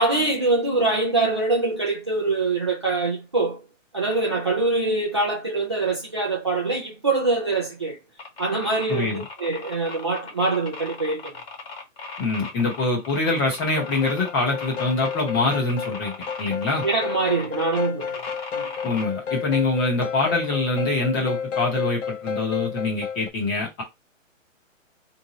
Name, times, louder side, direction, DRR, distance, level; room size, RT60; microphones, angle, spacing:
voice 1, 0.0-3.6 3.9-8.0 8.4-11.3 16.8-18.2 18.5-18.6, right 3 dB, 25° right, 0.4 m, -24 dB
sound 1, 8.2-19.0, left 4 dB, 50° left, 1.3 m, -38 dB
voice 2, 8.9-9.2 12.2-16.8 18.8-23.8, left 3 dB, 15° left, 1.0 m, -24 dB
sound 2, 13.8-23.3, left 7 dB, 70° left, 0.8 m, -32 dB
3.7 x 2.8 x 3.0 m
hypercardioid pair, 165°, 39 cm